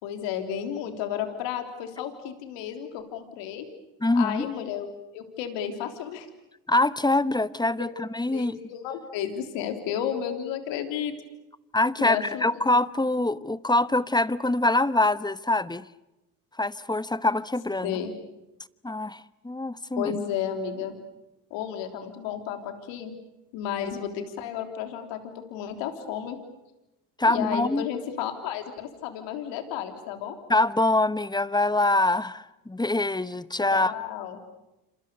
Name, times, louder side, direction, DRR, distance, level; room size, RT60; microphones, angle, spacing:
voice 1, 0.0-3.7 4.1-4.9 5.1-6.3 7.8-7.9 8.3-11.1 12.0-12.6 17.8-18.1 20.0-21.0 21.5-23.2 23.5-25.2 25.5-26.4 27.2-30.4 33.7-34.4, left 9 dB, 75° left, 6 dB, 3.5 m, -32 dB
voice 2, 4.0-4.5 6.7-8.6 11.7-15.9 16.6-18.0 18.8-20.2 27.2-27.9 30.5-33.9, left 2 dB, 10° left, 16 dB, 0.9 m, -24 dB
28.0 x 26.5 x 6.9 m, 0.95 s
hypercardioid pair, 65°, 44 cm